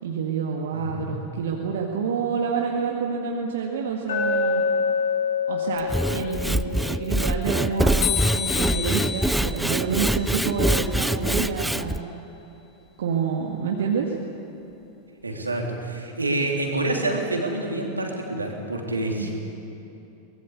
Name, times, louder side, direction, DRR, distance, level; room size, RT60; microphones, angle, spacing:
voice 1, 0.0-4.6 5.5-12.1 13.0-14.1 19.2-19.3, right 6 dB, 60° right, 0 dB, 2.0 m, -28 dB
voice 2, 0.7-1.1 15.2-19.3, right 2 dB, 80° right, 1 dB, 3.4 m, -27 dB
Glass, 4.1-8.2, left 5 dB, 65° left, 5.1 m, -27 dB
Sawing / Wood, 5.8-12.0, right 1 dB, ahead, 0.5 m, -24 dB
sound 1, 8.0-11.1, left 9 dB, 35° left, 4.2 m, -31 dB
23.5 x 20.0 x 8.3 m, 2.9 s
figure-of-eight pair, 90°, 0 cm